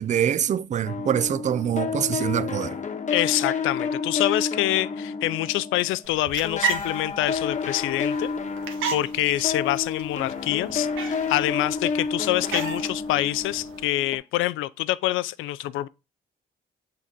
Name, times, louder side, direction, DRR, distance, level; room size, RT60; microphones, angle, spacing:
voice 1, 0.0-2.8, right 9 dB, 40° right, 0.4 m, -24 dB
sound 1, 0.8-6.1 6.4-14.2, left 5 dB, 40° left, 1.1 m, -30 dB
voice 2, 3.1-8.3 8.9-15.9, left 15 dB, 90° left, 0.4 m, -26 dB
sound 2, 6.0-13.9, right 6 dB, 80° right, 1.4 m, -35 dB
8.1 x 3.8 x 3.6 m
cardioid pair, 90°, 20 cm